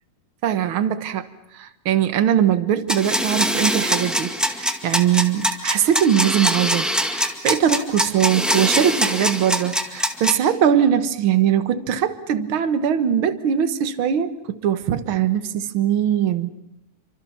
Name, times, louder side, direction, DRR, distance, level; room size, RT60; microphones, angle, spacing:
voice 1, 0.4-1.3 1.5-16.5, right 9 dB, 60° right, 10 dB, 1.4 m, -21 dB
sound 1, 2.9-10.3, equal, ahead, 0.8 m, -22 dB
29.0 x 25.0 x 5.7 m, 0.90 s
omnidirectional pair, 3.8 m